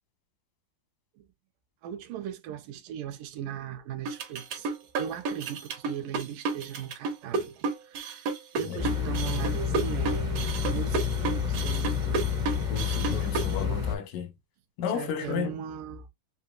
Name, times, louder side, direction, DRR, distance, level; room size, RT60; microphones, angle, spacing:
voice 1, 1.8-8.3 8.5-12.4 13.4-13.9 14.9-16.1, right 9 dB, 85° right, 2.2 m, -38 dB
sound 1, 4.1-13.6, right 4 dB, 65° right, 1.9 m, -31 dB
sound 2, 8.8-13.9, left 7 dB, 30° right, 0.6 m, -29 dB
voice 2, 12.7-14.3 14.8-15.5, left 7 dB, 90° left, 2.6 m, -32 dB
7.2 x 2.7 x 2.3 m
omnidirectional pair, 3.7 m